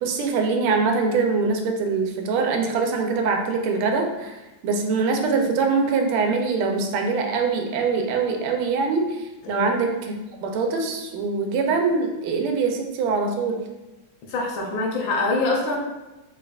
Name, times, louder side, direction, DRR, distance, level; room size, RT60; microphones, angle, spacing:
voice 1, 0.0-4.3 4.6-10.1 10.4-13.6, right 4 dB, 90° right, 3 dB, 1.4 m, -23 dB
voice 2, 14.3-15.8, left 2 dB, 75° left, -1 dB, 1.4 m, -24 dB
3.9 x 3.3 x 2.3 m, 1.0 s
omnidirectional pair, 2.3 m